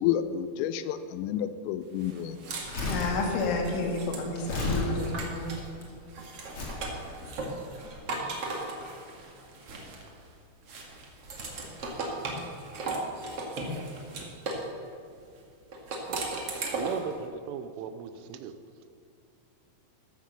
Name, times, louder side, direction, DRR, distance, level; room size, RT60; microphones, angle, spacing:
voice 1, 0.0-2.4, left 10 dB, 90° left, 12 dB, 3.4 m, -30 dB
sound 1, 2.0-5.7 6.1-10.3 10.7-14.7 15.7-17.1, right 2 dB, 50° right, 1.8 m, -37 dB
Crumpling crinkling, 2.5-5.8 6.5-6.9 7.6-7.7, left 3 dB, 30° left, 2.9 m, -33 dB
voice 2, 2.9-5.5, left 3 dB, 75° left, 1 dB, 4.3 m, -30 dB
voice 3, 16.6-18.5, right 7 dB, 85° right, 10 dB, 3.3 m, -38 dB
13.5 x 13.5 x 6.6 m, 2.4 s
omnidirectional pair, 5.7 m